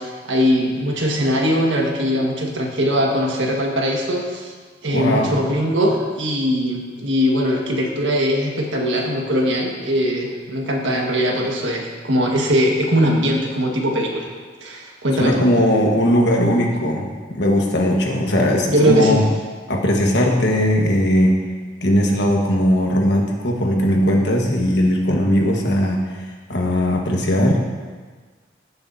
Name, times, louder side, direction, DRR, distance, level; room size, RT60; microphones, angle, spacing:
voice 1, 0.0-4.5 4.8-14.3 14.6-15.4 18.7-19.2, equal, 85° right, 0 dB, 1.6 m, -20 dB
voice 2, 4.9-5.4 15.2-19.2 19.7-21.4 21.8-26.0 26.5-27.6, equal, 65° left, 0 dB, 1.4 m, -18 dB
16.0 x 6.8 x 2.7 m, 1.4 s
head